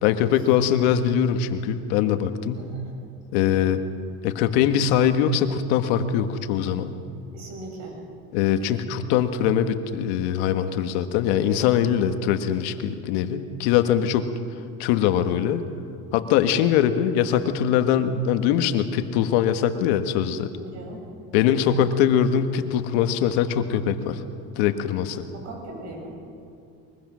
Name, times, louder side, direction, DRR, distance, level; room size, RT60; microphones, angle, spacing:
voice 1, 0.0-2.7 3.3-3.8 4.2-7.0 8.3-14.3 14.8-15.6 16.1-20.5 21.3-24.2 24.5-25.2, left 9 dB, 80° left, 8 dB, 1.6 m, -22 dB
voice 2, 2.5-2.9 7.3-8.0 20.6-21.1 25.3-26.2, right 2 dB, 55° right, 0 dB, 7.4 m, -39 dB
23.0 x 21.5 x 6.3 m, 2.7 s
supercardioid pair, 115°, 33 cm